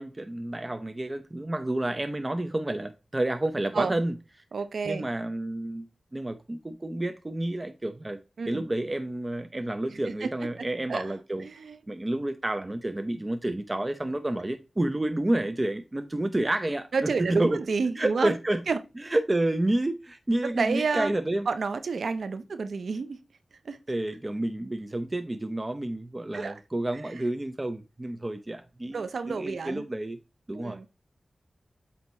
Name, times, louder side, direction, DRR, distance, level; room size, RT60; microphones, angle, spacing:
voice 1, 0.0-4.1 4.9-5.9 6.1-8.2 8.5-11.4 11.9-17.6 18.0-18.6 19.1-21.5 23.9-30.2 30.5-30.9, right 1 dB, 30° right, 0.7 m, -29 dB
voice 2, 4.5-5.1 8.4-8.6 9.9-11.1 11.4-11.8 16.9-18.3 18.7-18.8 20.4-21.2 21.5-23.2 23.6-23.8 26.3-26.6 26.9-27.2 28.9-29.9 30.5-30.9, right 4 dB, 80° right, 0.5 m, -30 dB
8.0 x 2.9 x 4.2 m
cardioid pair, 40°, 0 cm